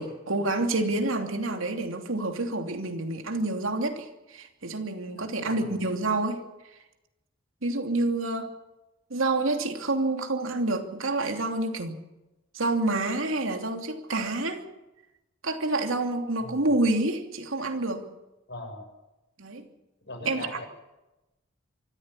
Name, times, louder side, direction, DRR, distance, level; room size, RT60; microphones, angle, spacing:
voice 1, 0.0-6.4 7.6-8.5 9.1-11.9 12.5-14.6 15.4-18.1 19.4-19.6 20.2-20.6, right 2 dB, 85° right, 5 dB, 2.8 m, -28 dB
voice 2, 5.2-5.8 16.4-16.7 18.5-18.9 20.1-20.7, left 2 dB, 60° left, 4 dB, 6.9 m, -41 dB
25.0 x 14.0 x 9.9 m, 1.0 s
head